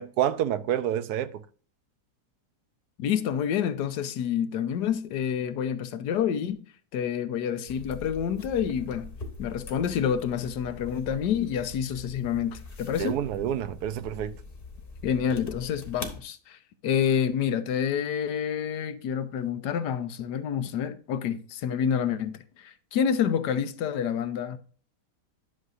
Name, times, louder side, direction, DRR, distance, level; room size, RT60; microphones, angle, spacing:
voice 1, 0.0-1.4 13.0-14.4, right 10 dB, 75° right, 1.1 m, -28 dB
voice 2, 3.0-6.6 6.9-9.1 9.4-13.2 15.0-16.6 16.8-24.6, left 8 dB, 80° left, 1.3 m, -28 dB
sound 1, 7.7-16.2, left 3 dB, 35° left, 1.4 m, -43 dB
11.0 x 6.4 x 2.6 m
omnidirectional pair, 1.8 m